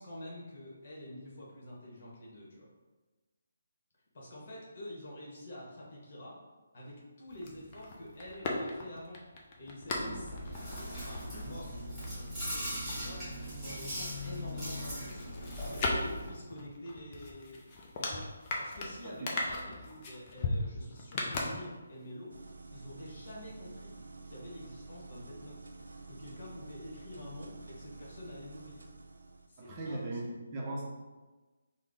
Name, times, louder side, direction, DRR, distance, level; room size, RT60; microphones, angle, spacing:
voice 1, 0.0-2.7 4.1-6.4 6.7-9.2 9.6-15.3 15.7-17.6 18.0-18.3 18.6-24.0 24.2-25.7 26.1-28.9 29.5-30.3, left 1 dB, 45° left, -4 dB, 1.2 m, -47 dB
sound 1, 7.3-13.8 14.1-22.1 22.4-22.5, left 2 dB, 30° left, 0.5 m, -39 dB
Chewing mastication, 9.9-16.3, equal, 5° right, 1.4 m, -40 dB
sound 2, 22.3-29.5, right 3 dB, 75° right, 0.3 m, -49 dB
voice 2, 29.6-30.9, right 2 dB, 25° right, -3 dB, 0.6 m, -38 dB
3.6 x 2.0 x 3.6 m, 1.2 s
figure-of-eight pair, 145°, 0 cm